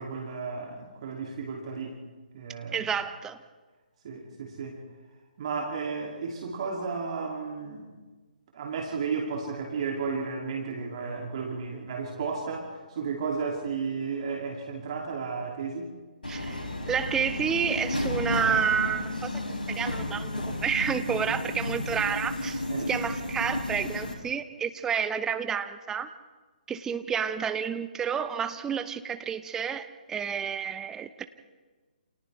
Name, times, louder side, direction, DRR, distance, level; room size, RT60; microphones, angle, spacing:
voice 1, 0.0-2.0 2.3-2.9 4.0-4.8 5.4-7.9 8.5-15.9 22.7-23.0, right 5 dB, 40° right, 0 dB, 2.8 m, -33 dB
voice 2, 2.7-3.4 16.3-19.3 19.7-26.1 26.7-31.2, right 7 dB, 10° right, 10 dB, 0.8 m, -30 dB
Subway metro underground, 16.2-24.1, left 1 dB, 75° left, 6.0 m, -32 dB
28.5 x 28.0 x 3.5 m, 1.3 s
figure-of-eight pair, 135°, 5 cm